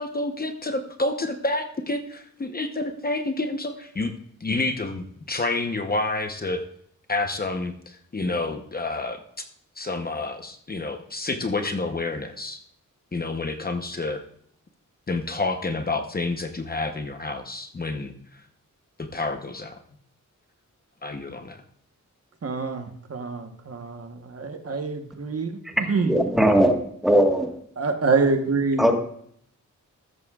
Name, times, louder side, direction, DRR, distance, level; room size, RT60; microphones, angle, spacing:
voice 1, 0.0-4.1 4.4-6.6 7.1-9.4 9.8-12.6 13.1-14.2 15.1-18.4 19.0-19.8 21.0-21.6, left 2 dB, 30° left, 6 dB, 0.8 m, -29 dB
voice 2, 22.4-25.5 25.8-26.1 27.8-28.9, right 4 dB, 50° right, 6 dB, 1.1 m, -26 dB
voice 3, 26.0-26.7 27.0-27.6 28.8-29.0, equal, ahead, 3 dB, 1.4 m, -19 dB
14.5 x 13.0 x 2.4 m, 0.66 s
wide cardioid pair, 170°, 31 cm